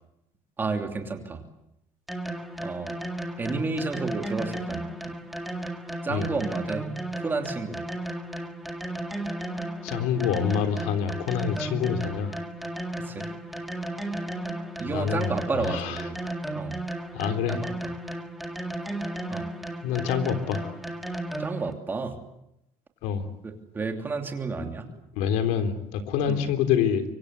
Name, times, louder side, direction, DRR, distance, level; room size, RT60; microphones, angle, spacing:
voice 1, 0.6-1.4 2.6-3.0 3.4-4.9 6.0-6.9 7.1-7.8 13.0-13.3 14.8-16.2 16.5-16.8 17.5-17.9 19.3-19.5 21.4-22.2 23.4-24.9 26.3-26.4, right 4 dB, 15° right, 4 dB, 2.9 m, -31 dB
sound 1, 2.1-21.7, right 1 dB, ahead, 1.8 m, -34 dB
voice 2, 9.8-12.4 14.9-16.0 17.1-17.6 19.8-20.8 23.0-23.3 25.1-27.0, left 8 dB, 90° left, 7 dB, 3.6 m, -26 dB
26.0 x 24.0 x 8.2 m, 0.82 s
cardioid pair, 170°, 12 cm